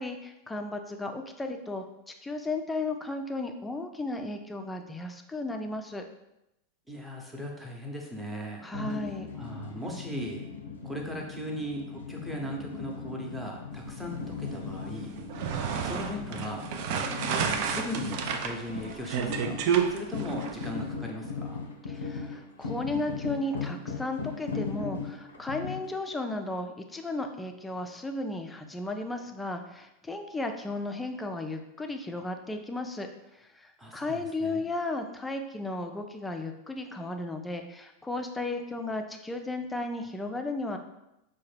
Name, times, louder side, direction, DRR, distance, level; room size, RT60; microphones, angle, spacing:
voice 1, 0.0-6.0 8.6-9.3 21.9-40.8, left 2 dB, 10° left, 5 dB, 0.4 m, -35 dB
voice 2, 6.9-8.7 9.3-10.5 10.8-15.1 15.8-16.6 17.3-19.6 19.9-21.6 33.8-34.6, equal, 10° right, 0 dB, 0.8 m, -38 dB
sound 1, 8.7-25.9, left 5 dB, 80° left, 0.5 m, -38 dB
sound 2, 15.2-20.7, right 7 dB, 55° right, 0.4 m, -30 dB
4.5 x 2.1 x 3.3 m, 0.88 s
hypercardioid pair, 95°, 0 cm